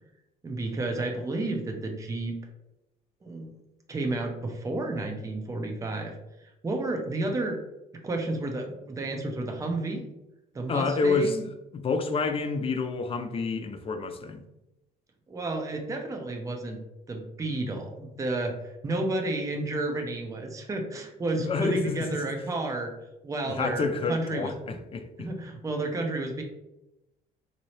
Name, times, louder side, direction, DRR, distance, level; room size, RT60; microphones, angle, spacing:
voice 1, 0.4-2.4 3.2-3.5 3.9-7.6 8.0-10.1 10.5-11.4 15.3-16.8 17.1-22.9 23.2-24.8 25.2-26.4, right 2 dB, 20° right, 0.6 m, -31 dB
voice 2, 10.7-11.4 11.7-14.4 21.3-22.2 23.4-25.3, left 4 dB, 35° left, 0.5 m, -28 dB
3.9 x 2.7 x 3.1 m
cardioid pair, 110°, 17 cm